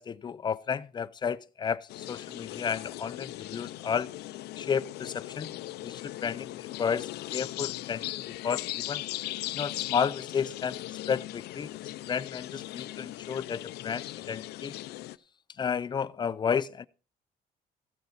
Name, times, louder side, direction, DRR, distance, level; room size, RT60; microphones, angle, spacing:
voice 1, 0.0-4.1 4.6-5.5 5.8-6.5 6.8-9.0 9.5-11.7 12.1-14.7 15.6-16.9, left 7 dB, 25° left, 0.5 m, -32 dB
sound 1, 1.9-15.2, left 16 dB, 75° left, 0.5 m, -38 dB
15.5 x 6.6 x 4.3 m
cardioid pair, 110°, 17 cm